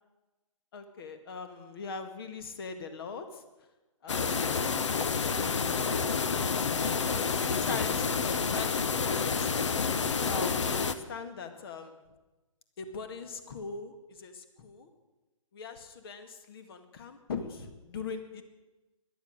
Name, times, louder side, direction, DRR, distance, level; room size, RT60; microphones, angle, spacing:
voice 1, 0.7-3.4 4.0-6.0 6.3-9.8 10.2-12.0 12.8-14.9 15.5-18.4, left 4 dB, 45° left, 8 dB, 1.9 m, -41 dB
sound 1, 4.1-11.0, left 5 dB, 60° left, 1.0 m, -29 dB
17.5 x 12.0 x 6.6 m, 1.1 s
figure-of-eight pair, 140°, 17 cm